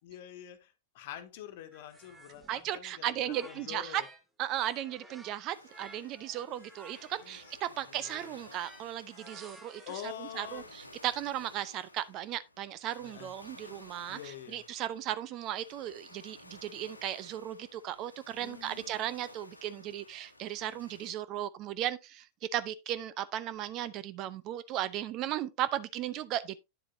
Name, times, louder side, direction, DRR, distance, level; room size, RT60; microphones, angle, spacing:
voice 1, 0.1-4.1 7.2-7.4 7.7-8.1 9.9-10.7 13.0-13.3 14.1-14.6 18.4-19.1, left 10 dB, 50° left, 1.4 m, -46 dB
sound 1, 1.7-4.2 4.5-10.6, right 1 dB, 10° right, 1.5 m, -54 dB
voice 2, 2.5-4.0 4.4-9.8 10.2-22.2 22.5-26.6, right 12 dB, 35° right, 0.7 m, -36 dB
sound 2, 5.5-21.1, left 2 dB, 85° left, 1.2 m, -55 dB
9.9 x 7.7 x 2.7 m
figure-of-eight pair, 90°, 0 cm